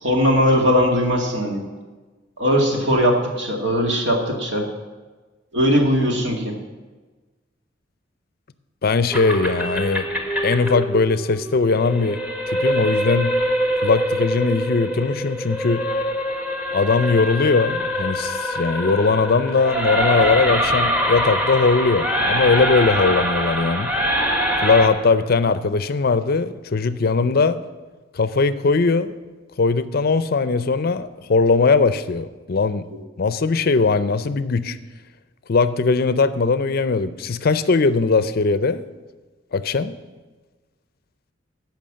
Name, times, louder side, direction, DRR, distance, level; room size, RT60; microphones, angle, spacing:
voice 1, 0.0-1.6 2.4-4.7 5.5-6.5, equal, 65° right, 1 dB, 2.1 m, -19 dB
voice 2, 8.8-10.1 10.4-12.2 12.5-13.3 13.8-15.8 16.7-23.9 24.6-27.6 28.1-29.1 29.6-32.8 33.2-34.8 35.5-38.8 39.5-39.9, left 4 dB, 55° left, 14 dB, 0.5 m, -20 dB
sound 1, 9.1-24.9, equal, 5° right, 1.4 m, -24 dB
14.5 x 5.8 x 7.5 m, 1.3 s
head